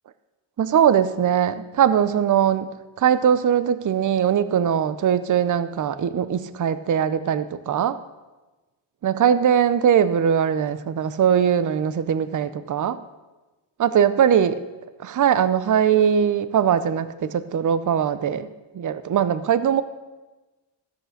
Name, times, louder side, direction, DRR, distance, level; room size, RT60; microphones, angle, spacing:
voice 1, 0.6-2.7 3.0-8.0 9.0-13.0 13.8-14.6 15.0-18.5 18.7-19.8, right 8 dB, 40° right, 14 dB, 0.5 m, -20 dB
13.5 x 6.6 x 6.5 m, 1.2 s
wide cardioid pair, 145°, 46 cm